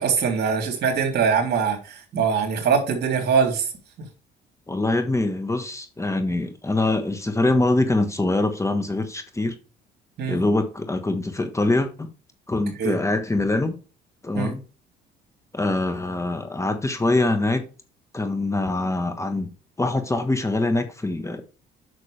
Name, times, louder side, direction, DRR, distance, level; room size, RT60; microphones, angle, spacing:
voice 1, 0.0-3.7 10.2-10.4 12.8-12.9 14.3-14.5, right 6 dB, 60° right, 3.4 m, -22 dB
voice 2, 4.7-9.5 10.3-12.1 12.5-13.8 14.2-14.6 15.5-17.7 18.1-19.5 19.8-21.4, left 2 dB, 15° left, 1.3 m, -24 dB
8.7 x 6.4 x 3.4 m
supercardioid pair, 80°, 19 cm